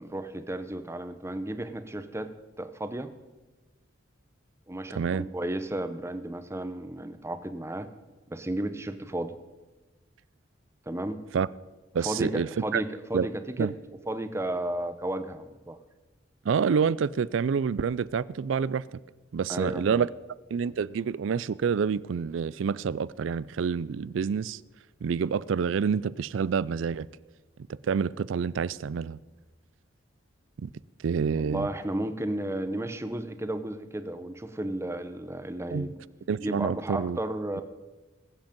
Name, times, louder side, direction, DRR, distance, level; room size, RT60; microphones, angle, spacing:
voice 1, 0.0-3.1 4.7-7.9 8.3-9.3 10.9-11.2 12.0-13.7 14.1-15.8 19.5-20.0 31.4-35.9 36.4-37.6, right 1 dB, 15° right, 0.8 m, -33 dB
voice 2, 5.0-5.3 11.3-11.5 11.9-12.8 13.1-13.3 13.6-13.7 16.4-19.0 19.3-20.1 20.5-24.6 25.0-27.1 27.8-29.2 30.6-30.7 31.0-31.7 35.7-35.9 36.3-37.2, right 6 dB, 75° right, 0.4 m, -28 dB
21.0 x 8.1 x 5.2 m
head